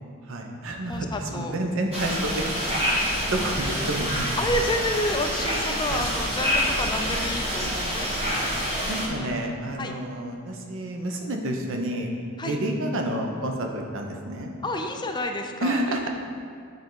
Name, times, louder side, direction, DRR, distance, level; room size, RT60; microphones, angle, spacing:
voice 1, 0.3-4.3 5.5-6.1 6.3-6.4 7.1-7.3 7.6-7.8 8.3-8.5 8.9-12.1 12.4-14.5 15.6-16.1, right 1 dB, 65° right, 3 dB, 0.7 m, -30 dB
voice 2, 0.9-1.6 4.4-8.5 9.1-9.4 9.8-10.0 12.4-12.6 14.6-16.1, left 1 dB, 20° left, 4 dB, 0.4 m, -30 dB
sound 1, 1.9-9.1, equal, 30° right, 1.2 m, -27 dB
9.0 x 3.5 x 3.9 m, 2.3 s
head